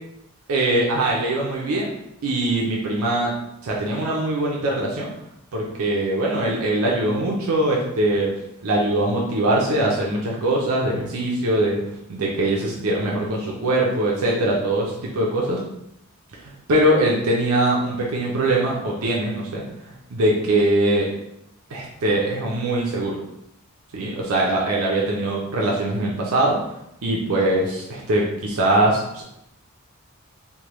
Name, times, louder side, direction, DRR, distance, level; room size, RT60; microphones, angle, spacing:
voice 1, 0.5-1.9 2.2-3.3 3.6-5.1 5.5-8.3 8.6-15.6 16.4-21.1 21.7-23.2 23.9-26.6 27.0-29.2, right 1 dB, 80° right, -3 dB, 0.6 m, -22 dB
3.3 x 2.2 x 3.0 m, 0.80 s
head